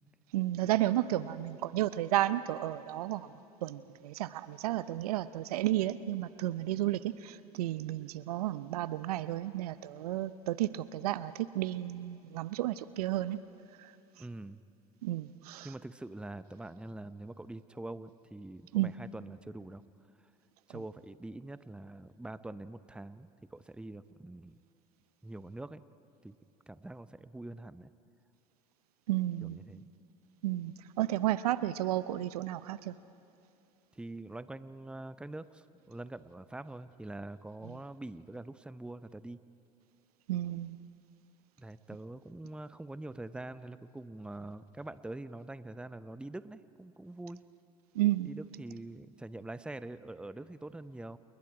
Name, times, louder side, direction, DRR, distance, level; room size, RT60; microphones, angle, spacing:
voice 1, 0.3-3.3 3.6-13.4 15.0-15.7 18.7-18.9 29.1-29.6 30.4-32.9 40.3-40.8 47.9-48.3, right 14 dB, 80° right, 16 dB, 0.6 m, -32 dB
voice 2, 14.2-14.6 15.6-19.8 20.7-24.6 25.2-25.8 26.2-26.3 26.7-27.9 29.4-29.9 33.9-39.4 41.6-47.4 48.2-51.2, right 2 dB, 5° right, 14 dB, 0.7 m, -44 dB
29.0 x 20.0 x 4.9 m, 2.6 s
hypercardioid pair, 75°, 19 cm